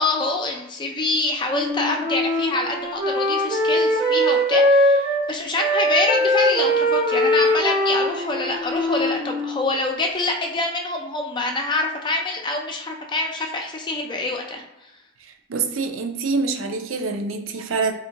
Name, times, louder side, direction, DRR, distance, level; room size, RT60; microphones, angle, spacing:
voice 1, 0.0-14.9, left 2 dB, 25° left, 2 dB, 0.4 m, -25 dB
Wind instrument woodwind instrument, 1.5-5.3 5.5-9.7, equal, 30° right, 0.9 m, -21 dB
voice 2, 15.5-17.9, right 4 dB, 90° right, 6 dB, 0.5 m, -25 dB
3.4 x 2.7 x 2.8 m, 0.95 s
head